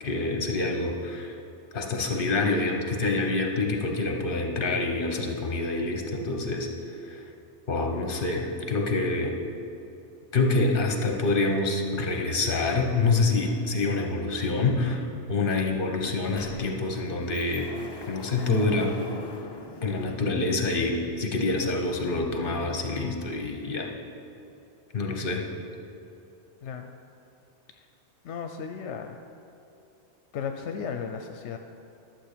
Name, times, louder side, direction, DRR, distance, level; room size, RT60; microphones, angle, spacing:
voice 1, 0.0-1.3 1.7-7.2 7.7-9.4 10.3-17.7 18.1-18.9 19.8-23.9 24.9-25.4, left 3 dB, 50° left, 3 dB, 1.3 m, -26 dB
Sliding door, 15.5-15.6 15.9-20.9, left 4 dB, 35° left, 0.4 m, -44 dB
voice 2, 26.6-26.9 27.7-27.9 28.2-29.2 30.3-31.6, left 6 dB, 80° left, 5 dB, 0.9 m, -35 dB
12.0 x 7.5 x 5.0 m, 2.8 s
omnidirectional pair, 1.2 m